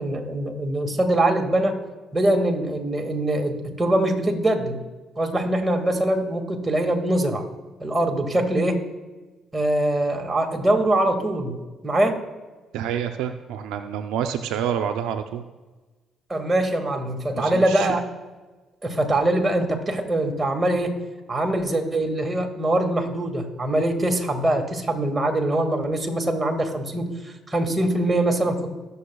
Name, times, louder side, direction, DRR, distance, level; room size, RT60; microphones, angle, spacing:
voice 1, 0.0-1.8 2.1-4.8 5.2-7.4 7.8-8.8 9.5-11.6 11.8-12.2 16.3-18.0 18.8-21.0 21.3-28.7, right 1 dB, 25° right, 4 dB, 1.9 m, -23 dB
voice 2, 12.7-15.4 17.3-17.9, right 9 dB, 80° right, 7 dB, 0.5 m, -28 dB
21.0 x 6.9 x 2.3 m, 1.2 s
hypercardioid pair, 55°, 0 cm